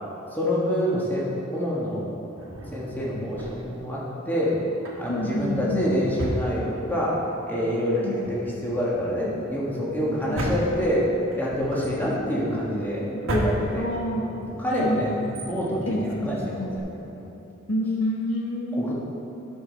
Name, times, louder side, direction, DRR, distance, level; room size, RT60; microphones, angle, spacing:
voice 1, 0.3-2.0 2.7-4.6 5.0-7.2 7.5-11.1 11.3-13.0 13.4-13.9 14.2-16.9 17.1-17.3 18.8-18.9, equal, 10° left, -6 dB, 1.5 m, -27 dB
Drawer open or close, 2.4-3.9 4.7-7.2 7.5-7.6 8.1-16.8, equal, 85° right, 1.3 m, -34 dB
voice 2, 5.1-5.9 8.0-8.1 10.0-10.6 13.3-13.5 13.7-14.2 14.7-15.1 15.9-16.7 17.7-18.9, left 1 dB, 85° left, -1 dB, 1.1 m, -28 dB
9.7 x 6.8 x 4.1 m, 2.8 s
head